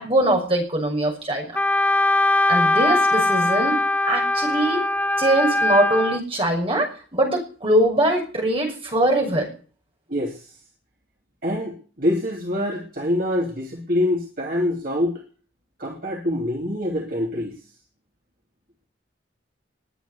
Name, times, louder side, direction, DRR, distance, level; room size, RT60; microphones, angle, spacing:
voice 1, 0.0-1.5 2.5-4.8 5.2-9.5, right 1 dB, 30° right, 1 dB, 6.3 m, -22 dB
Wind instrument woodwind instrument, 1.6-6.2, left 2 dB, 10° left, 0.7 m, -21 dB
voice 2, 10.1-10.5 11.4-15.2 15.8-17.5, left 1 dB, 50° right, 0 dB, 2.6 m, -25 dB
20.5 x 9.3 x 6.8 m, 0.42 s
head